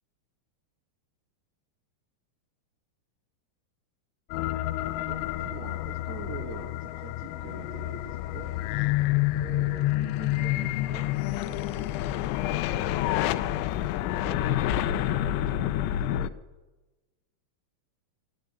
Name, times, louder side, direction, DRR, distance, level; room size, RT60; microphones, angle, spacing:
sound 1, 4.3-16.3, left 14 dB, 90° left, 2.9 m, -28 dB
voice 1, 5.0-8.6 9.4-12.0 12.3-13.6 14.2-16.3, right 6 dB, 70° right, 5 dB, 3.6 m, -45 dB
13.0 x 10.5 x 8.2 m, 1.1 s
omnidirectional pair, 5.0 m